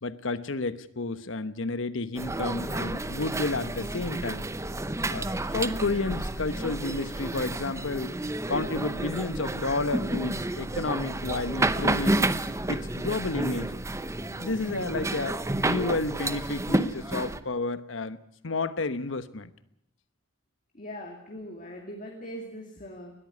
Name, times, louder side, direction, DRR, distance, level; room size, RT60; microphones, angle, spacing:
voice 1, 0.0-4.5 5.1-5.3 5.5-8.1 8.5-12.3 12.7-13.8 14.4-18.2 18.4-19.5, left 3 dB, 85° left, 1.1 m, -31 dB
sound 1, 2.2-17.4, right 2 dB, 15° right, 0.8 m, -30 dB
voice 2, 20.7-23.1, equal, 45° left, 2.6 m, -41 dB
20.0 x 14.0 x 9.5 m
head